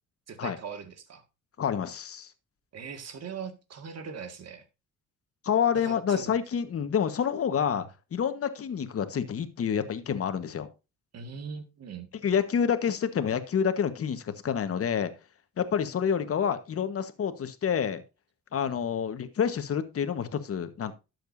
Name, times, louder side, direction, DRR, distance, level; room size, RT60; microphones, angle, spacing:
voice 1, 0.3-1.2 2.7-4.6 5.7-6.3 11.1-12.1, right 6 dB, 55° right, 1.9 m, -40 dB
voice 2, 1.6-2.3 5.4-10.7 12.2-15.1 15.6-18.0 18.5-20.9, left 7 dB, 50° left, 1.3 m, -28 dB
12.0 x 7.9 x 2.7 m
cardioid pair, 90°, 30 cm